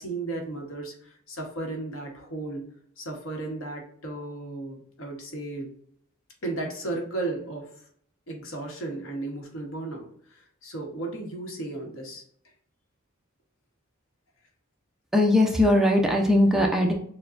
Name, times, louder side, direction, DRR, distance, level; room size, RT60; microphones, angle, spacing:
voice 1, 0.0-2.7 3.0-5.7 6.4-7.7 8.3-12.2, right 2 dB, 85° left, 1 dB, 1.2 m, -35 dB
voice 2, 15.1-16.9, left 1 dB, ahead, 0 dB, 0.5 m, -20 dB
6.5 x 2.2 x 2.5 m, 0.65 s
head